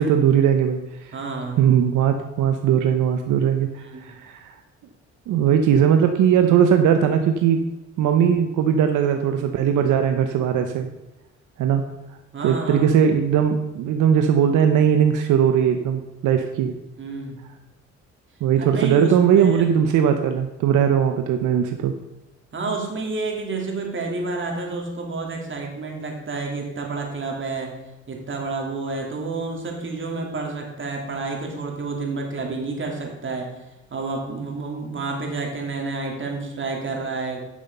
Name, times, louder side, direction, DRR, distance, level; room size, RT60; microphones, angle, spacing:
voice 1, 0.0-1.1 1.6-4.6 5.3-7.6 8.0-10.9 11.6-11.8 12.4-16.7 18.4-21.9, right 8 dB, 80° right, 6 dB, 0.8 m, -19 dB
voice 2, 1.1-1.6 3.9-4.1 12.3-12.9 17.0-17.4 18.6-19.6 22.5-27.8 28.1-33.6 33.9-37.4, right 3 dB, 40° right, 1 dB, 2.9 m, -29 dB
10.5 x 6.3 x 5.5 m, 1.0 s
cardioid pair, 90°, 30 cm